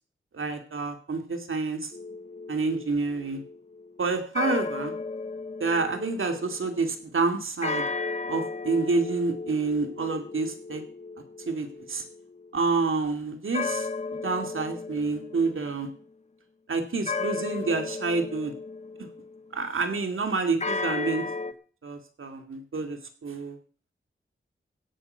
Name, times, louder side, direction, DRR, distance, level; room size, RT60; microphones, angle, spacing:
voice 1, 0.3-1.9 2.5-3.4 4.0-4.9 5.6-7.8 8.3-10.8 11.5-12.0 12.5-13.9 14.2-15.9 16.7-18.5 19.5-21.2 21.8-23.6, right 3 dB, 80° right, 6 dB, 2.5 m, -28 dB
sound 1, 1.9-6.8 7.6-12.5 13.5-15.9 17.1-19.5 20.6-21.5, left 4 dB, 35° left, 1.2 m, -35 dB
16.0 x 8.2 x 6.7 m, 0.42 s
wide cardioid pair, 60°, 21 cm